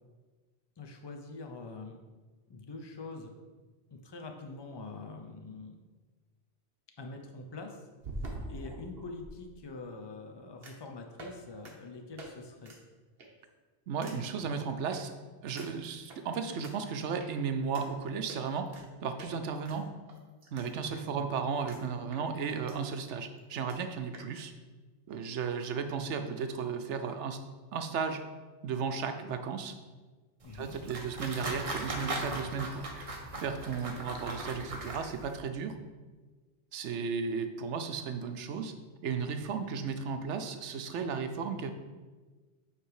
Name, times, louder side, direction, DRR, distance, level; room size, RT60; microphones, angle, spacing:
voice 1, 0.8-2.0 2.5-3.3 3.9-5.8 7.0-7.9 8.2-12.7 20.9-21.3 30.4-30.7, left 3 dB, 30° left, 3 dB, 0.5 m, -45 dB
sound 1, 8.0-9.3 10.6-10.9 11.2-11.4 11.6-11.7 12.2-12.3 12.6-12.8 13.2-13.5 14.0-14.2 14.9-15.0 15.6-16.2 16.6-16.7 17.2-17.3 17.7-17.9 18.3-18.9 19.2-19.3 19.6-20.7 21.0-21.1 21.7-21.8 22.1-22.8 23.1-23.2 23.4-23.5 23.7-23.8 24.1-24.3, right 2 dB, 55° right, 1.2 m, -44 dB
voice 2, 13.9-15.1 15.4-18.7 19.0-19.9 20.5-24.5 25.1-27.4 27.7-28.2 28.6-29.7 30.6-35.7 36.7-38.7 39.0-41.7, right 5 dB, 75° right, 8 dB, 0.9 m, -34 dB
sound 2, 30.4-35.4, right 2 dB, 35° right, 0.8 m, -39 dB
8.3 x 3.3 x 4.7 m, 1.3 s
omnidirectional pair, 1.2 m